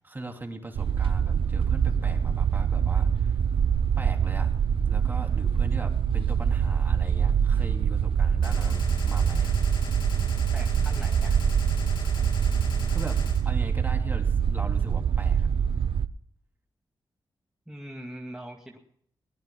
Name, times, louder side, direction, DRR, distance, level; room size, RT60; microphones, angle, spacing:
voice 1, 0.0-3.4 4.0-4.5 4.9-9.5 12.9-13.2 13.4-15.5, right 2 dB, 25° right, 3 dB, 2.9 m, -39 dB
sound 1, 0.8-16.1, right 7 dB, 80° right, 0.6 m, -24 dB
Gunshot gunfire, 8.4-13.4, left 3 dB, 65° left, 3.0 m, -40 dB
voice 2, 10.5-11.5 17.7-18.8, right 1 dB, 5° right, 0 dB, 2.3 m, -41 dB
22.0 x 19.5 x 2.3 m, 0.64 s
cardioid pair, 90°, 9 cm